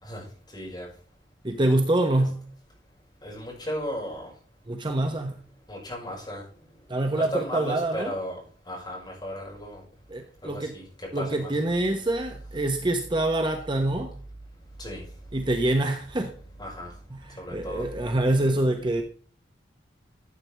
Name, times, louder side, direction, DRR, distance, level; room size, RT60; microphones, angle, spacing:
voice 1, 0.0-0.9 2.2-2.3 3.2-4.3 5.7-6.5 7.1-9.8 10.4-11.5 14.8-15.0 16.6-16.9 17.4-17.9, equal, 25° left, -3 dB, 5.5 m, -35 dB
voice 2, 1.4-2.5 4.7-5.4 6.9-8.1 10.1-10.7 11.1-14.1 15.3-16.4 17.1-19.0, right 1 dB, 25° right, 5 dB, 1.0 m, -25 dB
13.5 x 7.9 x 3.4 m, 0.43 s
head